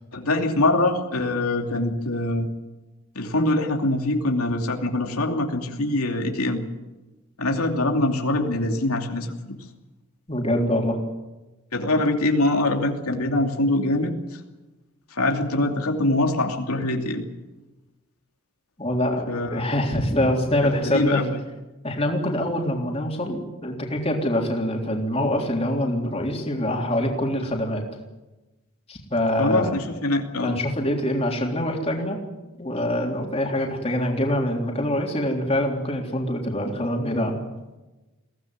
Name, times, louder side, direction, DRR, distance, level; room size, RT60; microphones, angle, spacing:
voice 1, 0.1-2.5 3.1-6.6 7.4-9.5 11.7-14.1 15.1-17.2 19.3-19.6 20.8-21.3 29.4-30.6, left 2 dB, 90° left, 3 dB, 2.8 m, -23 dB
voice 2, 10.3-11.0 18.8-21.2 21.8-27.8 28.9-29.7 30.4-32.2 32.6-37.4, left 1 dB, 25° left, 1 dB, 3.6 m, -24 dB
22.5 x 17.0 x 9.5 m, 1.1 s
head